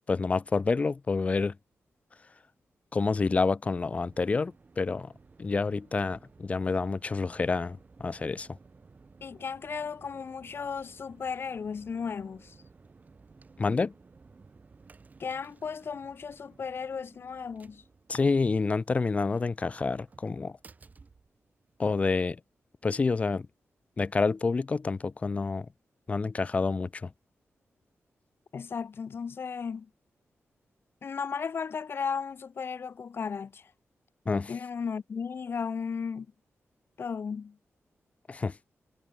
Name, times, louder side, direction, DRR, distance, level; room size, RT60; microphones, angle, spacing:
voice 1, 0.1-1.5 2.9-5.1 5.4-8.5 13.6-13.9 18.1-20.6 21.8-22.4 22.8-23.5 24.0-25.7 26.1-27.1 34.3-34.5 38.3-38.5, left 4 dB, 25° left, 0.4 m, -28 dB
heavy door open close outside to inside, 3.9-22.0, right 4 dB, 35° right, 3.5 m, -57 dB
voice 2, 9.2-12.6 15.2-17.8 28.5-29.9 31.0-33.7 34.5-36.3 37.0-37.6, left 6 dB, 50° left, 2.2 m, -35 dB
wide cardioid pair, 165°, 5 cm